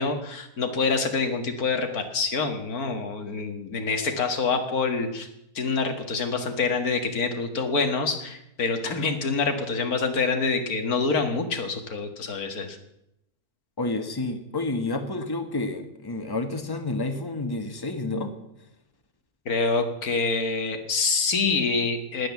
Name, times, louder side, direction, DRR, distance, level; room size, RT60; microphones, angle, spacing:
voice 1, 0.0-5.3 5.6-12.8 19.5-22.3, left 4 dB, 90° left, 6 dB, 2.2 m, -26 dB
voice 2, 13.8-18.3, left 2 dB, 15° left, 6 dB, 1.4 m, -29 dB
19.5 x 8.7 x 7.2 m, 0.82 s
omnidirectional pair, 1.5 m